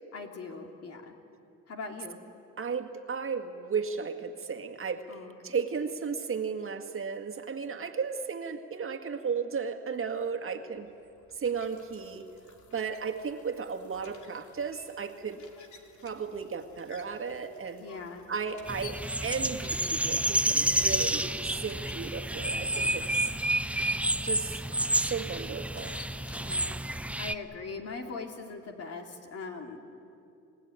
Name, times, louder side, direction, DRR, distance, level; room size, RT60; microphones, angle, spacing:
voice 1, 0.1-1.1 1.7-2.2 5.1-5.4 17.8-18.3 26.4-29.8, left 4 dB, 55° left, 3 dB, 3.0 m, -41 dB
voice 2, 2.6-5.1 5.4-10.9 11.4-12.3 12.7-15.4 16.0-17.8 18.3-23.3 24.2-24.6 25.0-26.0, right 5 dB, 45° right, 5 dB, 1.9 m, -34 dB
sound 1, 10.8-27.0, left 6 dB, 75° left, 2.8 m, -53 dB
sound 2, 18.7-27.3, right 1 dB, 5° right, 0.6 m, -29 dB
29.5 x 16.0 x 9.6 m, 2.7 s
cardioid pair, 90°, 30 cm